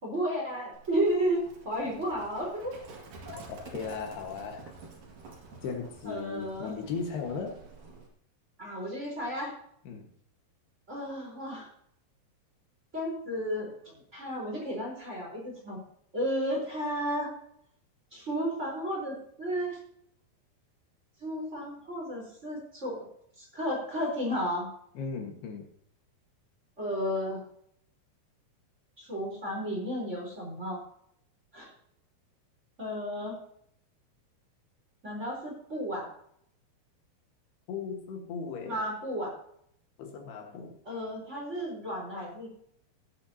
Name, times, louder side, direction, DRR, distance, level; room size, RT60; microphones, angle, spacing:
voice 1, 0.0-2.7 3.2-3.4 6.0-6.7 8.6-9.5 10.9-11.7 12.9-15.8 16.1-17.3 18.1-19.8 21.2-23.0 23.4-24.7 26.8-27.4 29.0-30.8 31.5-31.7 32.8-33.4 35.0-36.1 38.6-39.3 40.8-42.5, equal, 15° right, -3 dB, 3.9 m, -33 dB
Livestock farm animals working animals, 0.7-8.1, right 4 dB, 60° right, 3.5 m, -49 dB
voice 2, 3.5-4.7 5.6-7.6 9.8-10.1 24.9-25.7 37.7-38.8 40.0-40.8, left 5 dB, 75° left, 3 dB, 3.4 m, -37 dB
16.5 x 9.1 x 2.8 m, 0.68 s
omnidirectional pair, 4.6 m